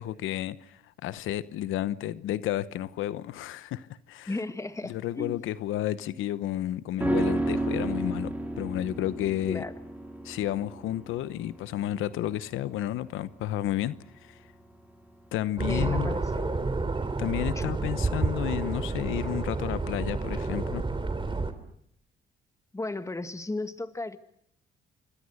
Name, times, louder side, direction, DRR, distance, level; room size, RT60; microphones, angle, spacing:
voice 1, 0.0-4.4 4.8-9.6 10.2-14.4 15.3-16.2 17.2-20.8, left 13 dB, 90° left, 1.0 m, -32 dB
voice 2, 4.3-5.5 9.5-9.7 15.7-16.6 17.6-17.7 22.7-24.2, left 2 dB, 15° left, 2.1 m, -35 dB
sound 1, 7.0-16.4 16.7-16.8, right 2 dB, 10° right, 4.9 m, -33 dB
sound 2, 15.6-21.5, right 3 dB, 25° right, 3.0 m, -30 dB
26.0 x 25.0 x 6.5 m
cardioid pair, 90°, 20 cm